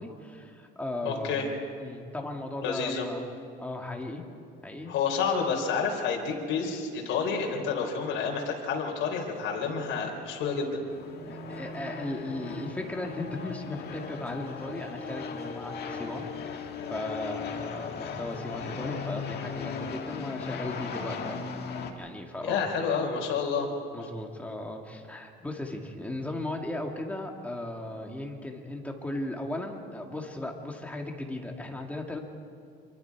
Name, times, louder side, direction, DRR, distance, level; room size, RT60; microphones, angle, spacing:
voice 1, 0.0-1.4 1.8-3.2 3.6-4.2 4.6-5.0 11.2-21.4 22.0-22.6 23.9-32.2, left 1 dB, 5° left, 1 dB, 2.3 m, -36 dB
voice 2, 1.0-1.5 2.6-3.1 4.9-10.8 22.4-23.7, left 5 dB, 75° left, 0 dB, 3.8 m, -29 dB
sound 1, 10.9-21.9, left 5 dB, 55° left, 2.0 m, -37 dB
26.5 x 23.5 x 4.8 m, 2.3 s
cardioid pair, 135°, 20 cm